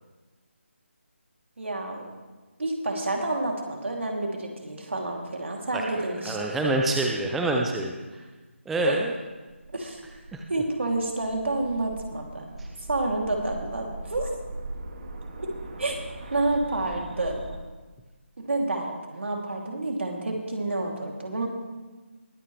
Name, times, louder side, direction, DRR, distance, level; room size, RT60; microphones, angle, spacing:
voice 1, 1.6-2.1 2.6-6.4 9.7-10.0 10.5-12.4 12.9-14.3 15.4-15.5 15.8-16.0 16.3-17.5 18.4-21.5, right 2 dB, 65° right, 0 dB, 2.9 m, -29 dB
voice 2, 5.7-8.3 8.7-9.1 10.3-10.4 12.6-12.7, right 2 dB, ahead, 0 dB, 0.3 m, -27 dB
sound 1, 9.4-17.6, right 2 dB, 40° right, 1.5 m, -40 dB
21.5 x 8.6 x 3.3 m, 1.3 s
figure-of-eight pair, 160°, 7 cm